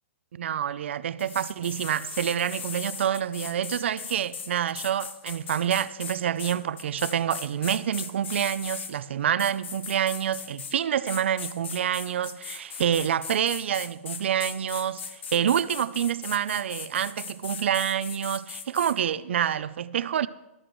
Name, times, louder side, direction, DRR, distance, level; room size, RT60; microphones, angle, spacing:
voice 1, 0.3-20.3, right 9 dB, 65° right, 0.5 m, -27 dB
sound 1, 1.2-8.9 9.4-10.8 11.1-18.9, left 6 dB, 60° left, 1.2 m, -38 dB
14.0 x 13.0 x 3.1 m
hypercardioid pair, 175°, 7 cm